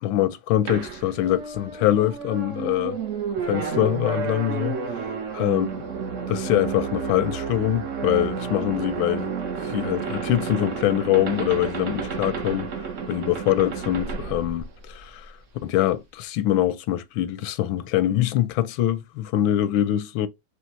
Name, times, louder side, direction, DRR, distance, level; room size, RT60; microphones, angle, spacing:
voice 1, 0.0-3.0 3.4-5.0 5.4-5.7 6.3-9.3 9.7-12.7 13.1-15.3 15.6-20.3, left 13 dB, 85° left, 1.3 m, -24 dB
sound 1, 0.7-15.2, right 6 dB, 55° right, 0.9 m, -31 dB
4.4 x 3.2 x 3.0 m
omnidirectional pair, 2.1 m